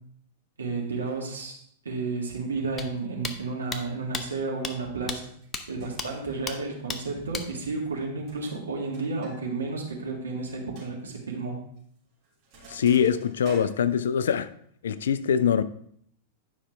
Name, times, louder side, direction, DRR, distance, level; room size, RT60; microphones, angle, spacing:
voice 1, 0.6-5.3 5.7-11.6, right 3 dB, 80° right, 1.8 m, -32 dB
sound 1, 2.8-2.9 3.2-3.4 3.7-3.8 4.1-4.2 4.6-4.7 5.1-5.2 5.5-5.6 6.0-6.1 6.5-6.6 6.9-7.0 7.3-7.5, left 5 dB, 25° left, 0.8 m, -32 dB
Sink (filling or washing), 5.4-5.5 5.8-6.3 7.3-7.7 8.0-9.4 9.7-9.8 10.2-10.3 10.8-10.9 11.8-12.0 12.2-14.4, right 2 dB, 40° right, 3.2 m, -49 dB
voice 2, 12.7-14.5 14.8-15.6, left 8 dB, 70° left, 0.4 m, -23 dB
10.0 x 5.6 x 3.4 m
figure-of-eight pair, 95°, 0 cm